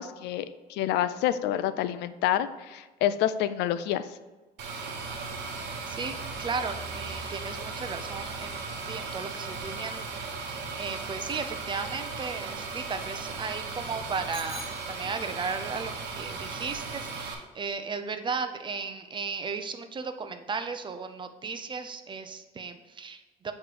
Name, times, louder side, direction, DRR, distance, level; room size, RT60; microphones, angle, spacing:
voice 1, 0.0-4.0, left 11 dB, 85° left, 13 dB, 0.4 m, -28 dB
sound 1, 4.6-17.3, right 4 dB, 85° right, 1.0 m, -37 dB
voice 2, 5.9-8.6 8.9-14.6 14.9-23.5, right 5 dB, 30° right, 8 dB, 0.6 m, -35 dB
Bicycle bell, 14.3-15.6, equal, 30° left, 1.4 m, -44 dB
8.0 x 3.2 x 4.8 m, 1.2 s
cardioid pair, 110°, 17 cm